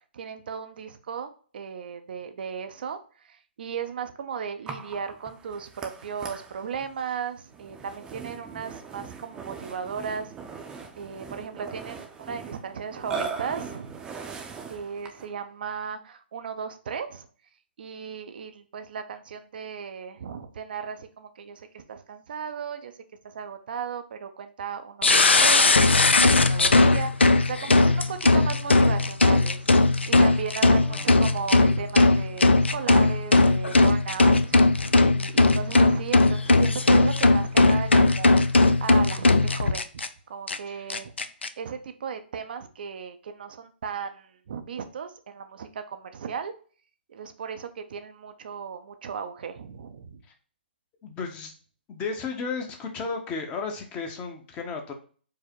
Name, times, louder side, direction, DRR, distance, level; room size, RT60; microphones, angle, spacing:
voice 1, 0.1-3.0 3.2-10.3 11.0-14.0 14.7-17.3 17.8-22.9 23.2-29.7 30.1-40.0 40.3-41.1 41.6-46.5 47.1-50.2, right 6 dB, 55° right, 8 dB, 0.5 m, -36 dB
Burping eructation, 4.7-15.4, right 5 dB, 15° right, 0.6 m, -40 dB
sound 1, 25.0-40.1 40.5-40.6 40.9-41.5, left 2 dB, 85° left, 0.4 m, -19 dB
voice 2, 30.8-31.2 40.7-40.9 51.0-51.5 51.9-54.9, left 4 dB, 20° left, 4 dB, 0.8 m, -34 dB
4.8 x 2.1 x 4.4 m, 0.41 s
figure-of-eight pair, 135°, 6 cm